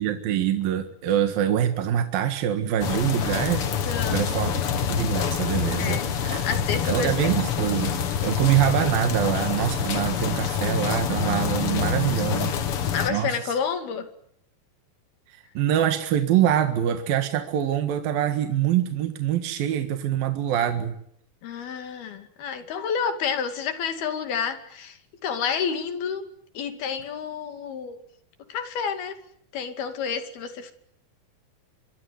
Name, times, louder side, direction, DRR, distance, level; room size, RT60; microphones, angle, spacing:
voice 1, 0.0-6.4 6.9-12.5 13.1-13.5 15.3-21.0, right 10 dB, 75° right, 7 dB, 3.4 m, -25 dB
sound 1, 2.8-13.1, left 7 dB, 50° left, 2.0 m, -26 dB
voice 2, 3.9-4.4 5.8-6.1 6.4-7.4 12.9-14.1 21.4-26.2 26.5-28.0 28.5-29.2 29.5-30.7, left 6 dB, 90° left, 8 dB, 4.5 m, -29 dB
26.0 x 23.5 x 9.6 m, 0.69 s
omnidirectional pair, 4.3 m